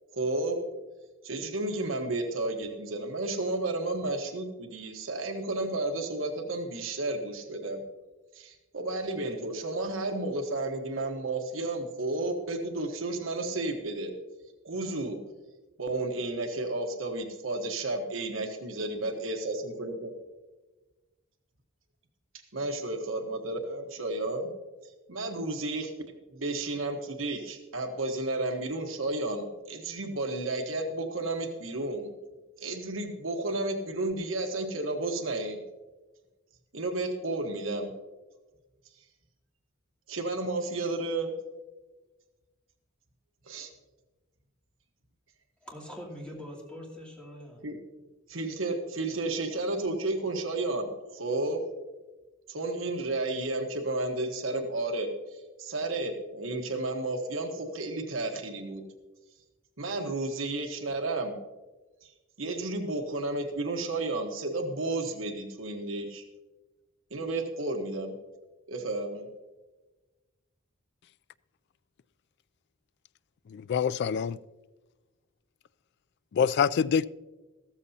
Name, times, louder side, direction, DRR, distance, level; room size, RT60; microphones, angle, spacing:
voice 1, 0.1-0.6 1.2-7.8 8.3-14.1 14.6-15.2 15.8-20.1 22.5-24.5 25.1-25.9 26.3-32.1 32.6-35.6 36.7-37.9 40.1-41.3 43.5-43.7 47.6-47.8 48.3-51.6 52.5-58.8 59.8-61.4 62.0-62.1 62.4-66.2 67.1-68.1 68.7-69.3, right 2 dB, 75° right, 1.2 m, -32 dB
voice 2, 45.6-47.6, equal, 5° left, 2.6 m, -43 dB
voice 3, 73.5-74.4 76.3-77.0, left 7 dB, 55° left, 0.3 m, -25 dB
14.5 x 13.5 x 2.8 m
head